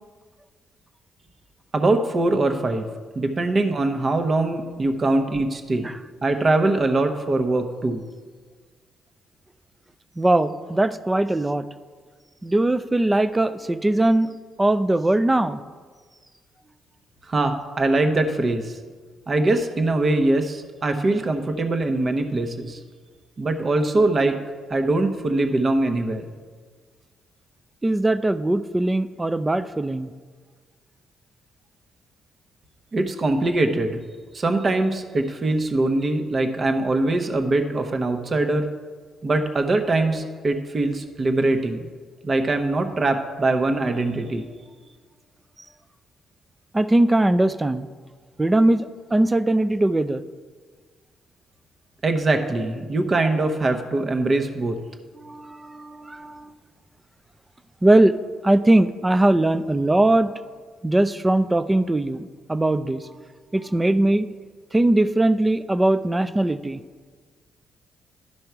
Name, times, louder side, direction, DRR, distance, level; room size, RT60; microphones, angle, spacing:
voice 1, 1.7-2.9 3.1-5.9 6.2-8.0 17.3-18.8 19.3-22.8 23.4-24.4 24.7-26.3 32.9-34.0 34.3-38.7 39.2-41.9 42.2-44.4 52.0-54.8, right 2 dB, 40° right, 6 dB, 0.9 m, -22 dB
voice 2, 10.2-11.7 12.4-15.6 27.8-30.1 46.7-47.9 48.4-50.2 55.2-56.5 57.8-58.2 58.4-60.3 60.8-63.2 63.5-64.3 64.7-66.8, right 1 dB, 15° right, 13 dB, 0.4 m, -20 dB
11.5 x 5.3 x 4.6 m, 1.5 s
cardioid pair, 90°, 0 cm